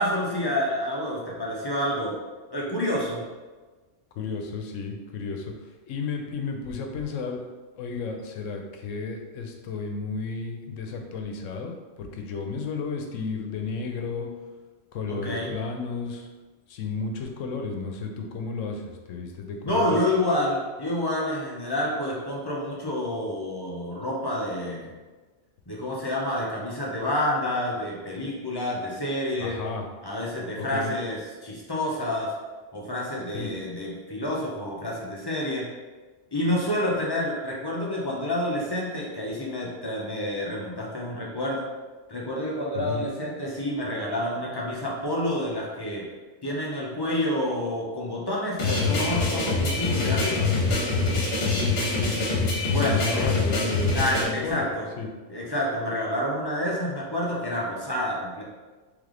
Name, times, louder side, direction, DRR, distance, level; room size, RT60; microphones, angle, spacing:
voice 1, 0.0-2.2 2.5-3.2 15.1-15.5 19.6-24.9 25.7-29.6 30.0-32.3 32.7-35.7 36.3-41.7 42.1-46.0 46.4-50.5 52.7-53.4 53.9-54.9 55.3-58.4, left 1 dB, 25° left, -4 dB, 0.6 m, -28 dB
voice 2, 4.1-7.5 7.8-14.3 14.9-16.3 16.7-20.0 29.4-29.9 30.6-30.9 33.3-33.5 42.7-43.0 51.5-52.5 52.7-54.7 55.0-55.1, left 4 dB, 85° left, 3 dB, 1.0 m, -33 dB
sound 1, 48.6-54.2, left 3 dB, 55° left, 1.2 m, -24 dB
3.5 x 3.3 x 3.7 m, 1.3 s
omnidirectional pair, 1.3 m